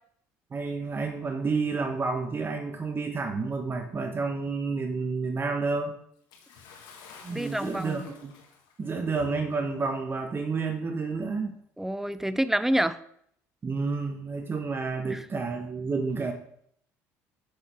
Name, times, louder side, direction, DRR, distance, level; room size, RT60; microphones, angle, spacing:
voice 1, 0.5-6.0 7.2-8.3 8.8-11.6 13.6-16.3, right 4 dB, 30° right, 5 dB, 1.2 m, -30 dB
Bathtub (filling or washing) / Splash splatter, 6.3-8.9 9.8-9.9 10.9-11.0, left 5 dB, 70° left, 1.6 m, -50 dB
voice 2, 7.3-8.1 11.8-13.0 15.1-15.3, right 1 dB, 5° right, 14 dB, 0.5 m, -28 dB
6.6 x 6.4 x 5.0 m, 0.68 s
supercardioid pair, 85°, 7 cm